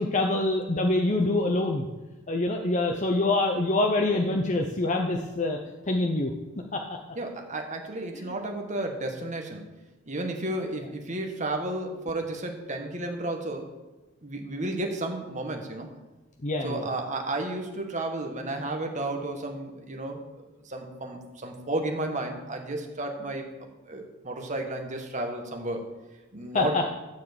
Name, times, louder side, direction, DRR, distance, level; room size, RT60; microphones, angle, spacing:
voice 1, 0.0-1.9 2.3-5.6 5.9-6.3 6.7-6.8 16.4-16.9 26.5-26.8, left 2 dB, 35° left, 2 dB, 0.8 m, -25 dB
voice 2, 7.1-9.6 10.1-13.7 14.2-15.9 16.6-20.2 20.6-23.5 23.9-25.8 26.3-26.8, right 2 dB, 35° right, 3 dB, 1.6 m, -32 dB
13.0 x 4.7 x 8.1 m, 1.2 s
head